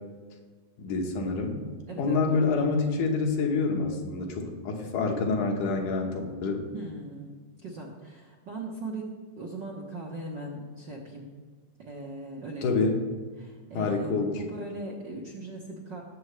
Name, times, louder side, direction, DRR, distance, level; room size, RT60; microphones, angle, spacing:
voice 1, 0.8-1.6 2.0-6.6 12.6-13.0 13.7-14.4, left 4 dB, 85° left, 2 dB, 2.8 m, -27 dB
voice 2, 1.9-2.6 6.7-9.1 9.4-11.3 11.8-12.8 13.4-16.0, right 2 dB, 65° right, -2 dB, 1.1 m, -39 dB
18.0 x 7.5 x 3.2 m, 1.5 s
omnidirectional pair, 3.5 m